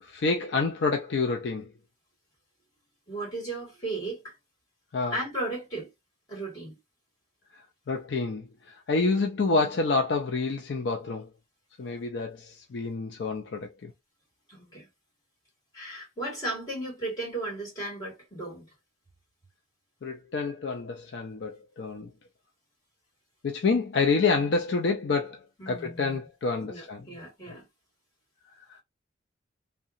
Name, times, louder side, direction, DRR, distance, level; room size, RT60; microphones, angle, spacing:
voice 1, 0.0-1.7 4.9-5.2 7.9-11.3 11.8-13.9 20.0-22.1 23.4-25.4 25.7-27.1 28.7-28.8, left 4 dB, 60° left, 0.4 m, -28 dB
voice 2, 3.1-4.2 5.1-5.9 6.3-6.8 14.5-14.9 15.7-18.7 25.6-26.2 26.6-27.6, right 2 dB, 20° left, 1.7 m, -35 dB
2.7 x 2.2 x 2.4 m
head